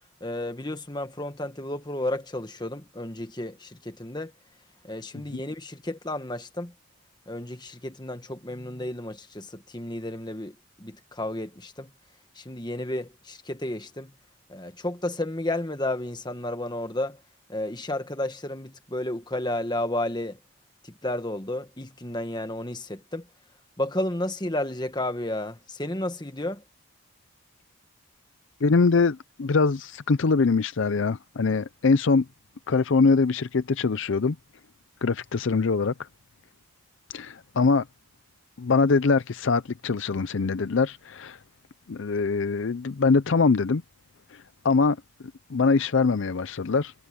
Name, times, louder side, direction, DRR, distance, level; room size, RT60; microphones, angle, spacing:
voice 1, 0.2-4.3 4.8-6.7 7.3-11.9 12.3-14.1 14.5-17.2 17.5-20.4 20.8-23.3 23.8-26.6, left 1 dB, 20° left, 1.4 m, -32 dB
voice 2, 28.6-32.3 32.7-34.4 35.0-36.1 37.1-37.8 38.6-41.4 41.9-43.8 44.3-45.0 45.5-46.9, left 4 dB, 55° left, 0.5 m, -23 dB
head